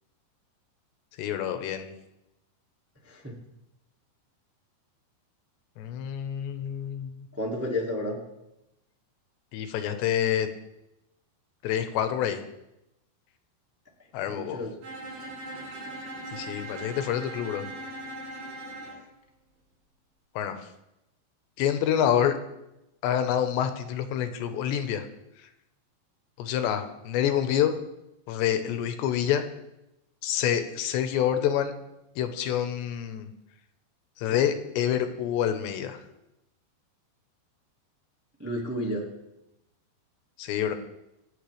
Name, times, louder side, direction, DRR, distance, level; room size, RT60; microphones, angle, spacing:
voice 1, 1.2-1.9 5.8-7.3 9.5-10.5 11.6-12.4 14.1-14.6 16.3-17.6 20.4-20.6 21.6-22.4 23.0-25.1 26.4-27.7 28.3-29.4 30.2-31.7 32.2-33.3 34.2-36.0 40.4-40.8, left 9 dB, 85° left, 8 dB, 3.1 m, -27 dB
voice 2, 3.0-3.3 7.3-8.2 14.2-14.8 18.8-19.0 38.4-39.1, left 1 dB, 10° right, -3 dB, 0.7 m, -32 dB
Bowed string instrument, 14.8-19.0, right 1 dB, 90° right, 6.3 m, -39 dB
26.0 x 8.9 x 3.4 m, 0.90 s
omnidirectional pair, 5.1 m